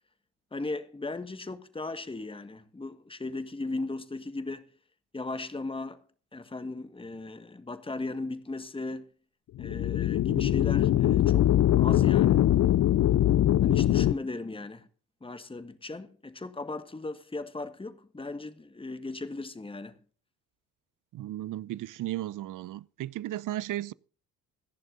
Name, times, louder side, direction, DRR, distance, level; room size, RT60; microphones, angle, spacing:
voice 1, 0.5-4.7 5.1-6.0 6.3-9.1 9.6-12.4 13.6-14.9 15.2-20.0, left 2 dB, 10° left, 1.6 m, -37 dB
sound 1, 9.6-14.1, left 12 dB, 40° left, 0.7 m, -22 dB
voice 2, 21.1-23.9, right 14 dB, 45° right, 0.7 m, -35 dB
26.5 x 11.0 x 2.7 m
figure-of-eight pair, 50°, 44 cm